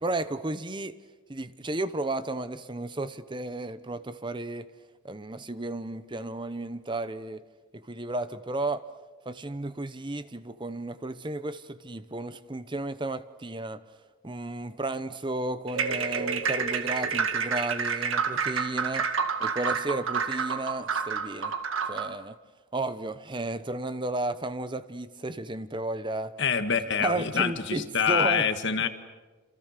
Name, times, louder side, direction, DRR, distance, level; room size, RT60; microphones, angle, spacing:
voice 1, 0.0-1.0 1.3-4.7 5.0-7.4 7.7-8.9 9.3-13.8 14.2-19.1 19.4-21.5 21.9-22.4 22.7-26.3 27.0-28.5, right 2 dB, 25° right, 0.8 m, -33 dB
sound 1, 15.7-22.1, right 5 dB, 80° right, 1.9 m, -29 dB
voice 2, 26.4-28.9, left 6 dB, 60° left, 1.8 m, -26 dB
27.5 x 27.5 x 6.7 m
head